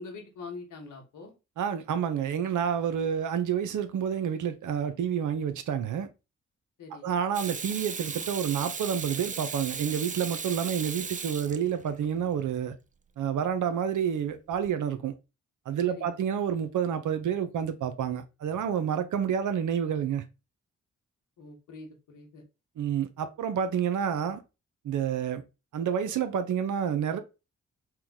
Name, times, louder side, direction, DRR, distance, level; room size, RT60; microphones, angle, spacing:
voice 1, 0.0-1.3 6.8-7.1 15.8-16.1 21.4-22.4, left 3 dB, 75° left, 1.4 m, -44 dB
voice 2, 1.6-6.1 7.0-12.7 13.2-15.1 15.7-20.2 22.8-24.4 24.8-25.4 25.7-27.2, right 8 dB, 70° right, 0.7 m, -29 dB
Water tap faucet / Sink (filling or washing), 7.3-12.1 14.5-14.7, right 5 dB, 25° right, 0.5 m, -37 dB
4.5 x 2.2 x 3.5 m
supercardioid pair, 45°, 31 cm